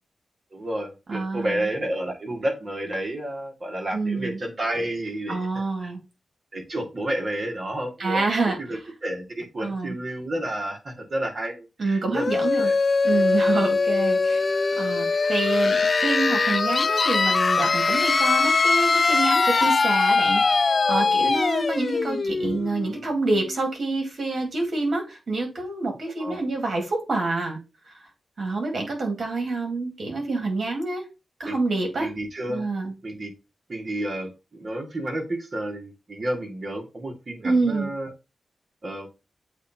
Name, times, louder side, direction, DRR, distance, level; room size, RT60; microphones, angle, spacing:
voice 1, 0.5-5.5 5.8-5.9 6.5-8.2 8.6-12.8 26.2-26.4 31.4-31.6 32.0-32.7 33.0-33.3 33.7-38.1 38.8-39.1, right 1 dB, 45° right, 1.8 m, -31 dB
voice 2, 1.1-1.7 3.9-4.4 5.3-6.0 8.0-8.8 9.6-10.0 11.8-12.7 13.0-14.4 14.8-27.6 27.9-28.0 28.4-31.1 31.4-32.1 32.5-32.9 37.4-37.9, right 3 dB, 60° right, 2.4 m, -27 dB
sound 1, 12.1-23.7, left 4 dB, 50° left, 0.4 m, -22 dB
8.0 x 2.7 x 4.4 m
cardioid pair, 70°, 0 cm